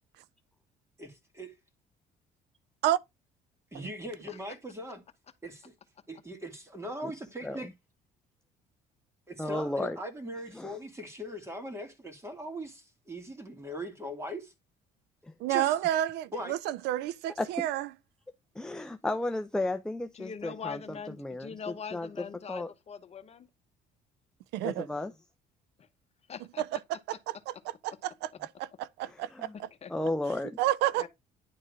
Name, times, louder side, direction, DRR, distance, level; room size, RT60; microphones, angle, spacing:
voice 1, 1.0-1.5 3.7-5.0 5.4-5.7 6.1-7.7 9.3-14.5 15.5-15.7 16.3-16.5, equal, 15° right, 2.5 m, -40 dB
voice 2, 9.4-10.0 10.5-10.8 15.2-15.3 17.4-17.7 18.6-22.7 24.6-25.1 29.0-29.6 29.9-30.6, left 1 dB, 5° left, 0.5 m, -34 dB
voice 3, 15.4-17.9 24.5-24.9 26.6-29.7 30.6-31.1, right 13 dB, 85° right, 0.5 m, -30 dB
voice 4, 20.2-23.5 26.3-26.6 29.8-29.9 31.0-31.1, left 6 dB, 40° left, 1.0 m, -42 dB
10.5 x 3.8 x 5.0 m
cardioid pair, 110°, 17 cm